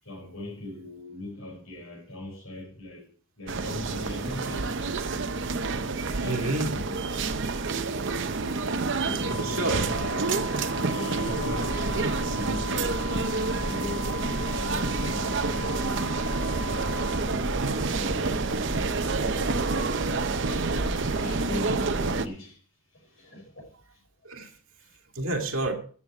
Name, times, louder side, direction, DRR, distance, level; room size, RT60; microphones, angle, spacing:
voice 1, 0.0-3.1 3.4-4.9 6.1-6.6 6.8-7.3 9.1-10.0 10.7-16.0 16.7-18.4 18.7-19.1 21.0-22.6 22.9-23.7 23.9-24.0 24.4-25.0, left 1 dB, 70° left, 6.0 m, -40 dB
sound 1, 3.5-22.3, right 4 dB, 55° right, 0.7 m, -29 dB
voice 2, 6.3-6.8 8.3-8.5 9.4-10.5 10.9-11.5 24.2-24.5 25.1-25.7, right 2 dB, 75° right, 2.3 m, -30 dB
sound 2, 9.2-17.2, left 6 dB, 25° left, 4.4 m, -40 dB
sound 3, 11.2-21.2, right 1 dB, 5° right, 1.9 m, -36 dB
13.5 x 7.9 x 4.8 m
head